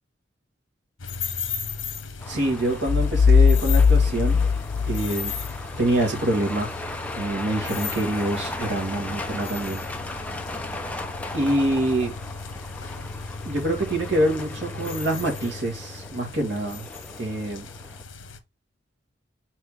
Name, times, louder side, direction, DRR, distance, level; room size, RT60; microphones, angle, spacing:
sound 1, 1.0-18.4, left 5 dB, 85° left, 1.0 m, -36 dB
Truck, 2.2-18.0, left 2 dB, 5° left, 0.7 m, -37 dB
voice 1, 2.3-4.5 4.9-5.3 5.8-6.7 7.2-9.8 11.3-12.1 13.4-16.9 17.2-17.7, right 1 dB, 65° right, 2.2 m, -25 dB
sound 2, 2.9-5.5, left 5 dB, 45° left, 0.3 m, -19 dB
4.6 x 4.3 x 4.9 m
head